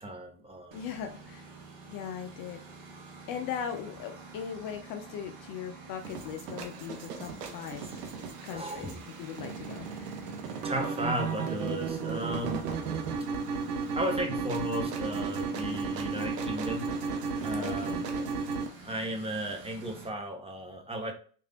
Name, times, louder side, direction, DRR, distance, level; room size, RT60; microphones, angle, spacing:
voice 1, 0.0-0.8 8.5-9.0 10.6-12.7 13.9-16.9 17.4-18.0 18.8-21.1, equal, 10° right, 3 dB, 0.7 m, -35 dB
voice 2, 0.7-1.5 1.9-2.6 3.3-9.9 17.5-18.1, left 8 dB, 45° left, 6 dB, 0.5 m, -39 dB
Engine, 0.7-20.1, right 3 dB, 50° right, 0.9 m, -48 dB
sound 1, 6.0-18.7, right 5 dB, 80° right, 0.7 m, -34 dB
3.2 x 2.6 x 2.3 m, 0.42 s
hypercardioid pair, 65°, 46 cm